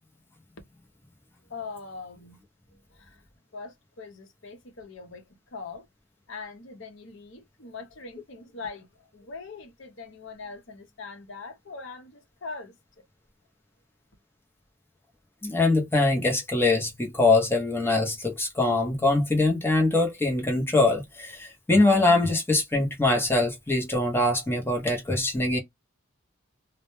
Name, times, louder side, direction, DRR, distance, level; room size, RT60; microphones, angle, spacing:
voice 1, 1.5-2.4 2.9-3.2 3.5-5.2 5.5-5.9 6.3-12.8, left 4 dB, 60° left, 0.7 m, -41 dB
voice 2, 15.4-25.6, left 2 dB, 10° left, 0.6 m, -23 dB
2.1 x 2.1 x 2.9 m
head